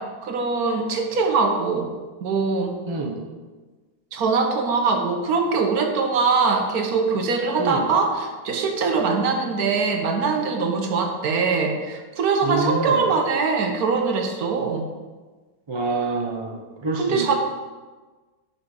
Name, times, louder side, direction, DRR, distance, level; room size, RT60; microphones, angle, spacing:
voice 1, 0.0-1.9 2.2-2.8 4.1-14.9 17.0-17.4, right 4 dB, 55° right, 4 dB, 1.3 m, -22 dB
voice 2, 2.9-3.2 7.6-7.8 12.4-13.0 15.7-17.4, right 3 dB, 35° right, 0 dB, 0.4 m, -26 dB
7.0 x 5.8 x 5.3 m, 1.3 s
omnidirectional pair, 2.1 m